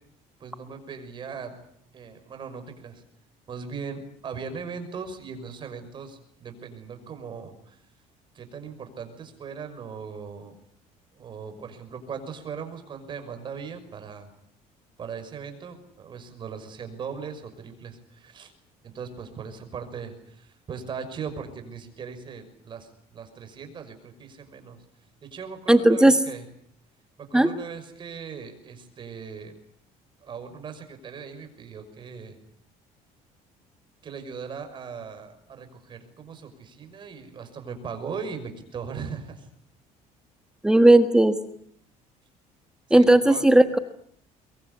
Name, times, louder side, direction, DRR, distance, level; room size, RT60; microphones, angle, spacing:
voice 1, 0.4-1.6 1.9-3.0 3.5-7.8 8.3-10.5 11.2-14.3 15.0-18.5 18.8-24.8 25.2-26.4 27.2-29.5 30.2-32.4 34.0-39.5 42.9-43.4, right 6 dB, 35° right, 7 dB, 6.1 m, -39 dB
voice 2, 25.7-26.2 27.3-27.5 40.6-41.4 42.9-43.8, right 1 dB, 5° right, 9 dB, 1.4 m, -16 dB
23.5 x 23.0 x 9.9 m, 0.67 s
cardioid pair, 155°, 14 cm